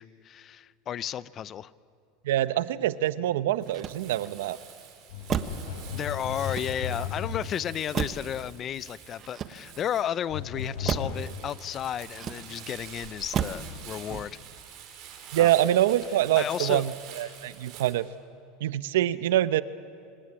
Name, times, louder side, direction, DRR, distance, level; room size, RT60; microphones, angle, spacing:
voice 1, 0.0-1.7 5.9-14.4 15.3-15.5 16.4-16.8, left 10 dB, 35° left, 18 dB, 0.6 m, -33 dB
voice 2, 2.2-4.6 15.3-18.1 18.6-19.6, right 13 dB, 90° right, 15 dB, 0.8 m, -25 dB
Motor vehicle (road), 3.6-4.4 5.3-5.7 6.4-7.1 7.9-8.4 9.2-9.9 10.8-11.2 12.1-12.7 13.3-13.7 14.1-14.5, right 8 dB, 35° right, 1.2 m, -33 dB
Crumpling crinkling, 3.6-17.9, right 8 dB, 55° right, 5.7 m, -47 dB
sound 1, 5.1-7.6 10.3-11.2, left 6 dB, 85° left, 4.3 m, -35 dB
26.5 x 18.5 x 9.9 m, 2.4 s
supercardioid pair, 125°, 0 cm